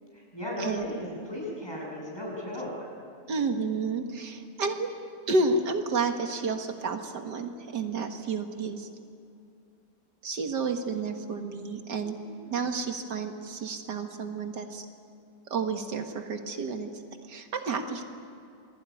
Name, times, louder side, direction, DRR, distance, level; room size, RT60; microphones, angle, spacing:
voice 1, 0.1-2.9 12.2-12.6, left 1 dB, 15° left, -3 dB, 8.1 m, -36 dB
voice 2, 3.3-4.9 5.3-8.9 10.2-12.2 12.5-14.9 15.5-16.9 17.3-18.0, right 4 dB, 80° right, 5 dB, 2.3 m, -30 dB
28.5 x 21.0 x 9.8 m, 2.6 s
omnidirectional pair, 1.8 m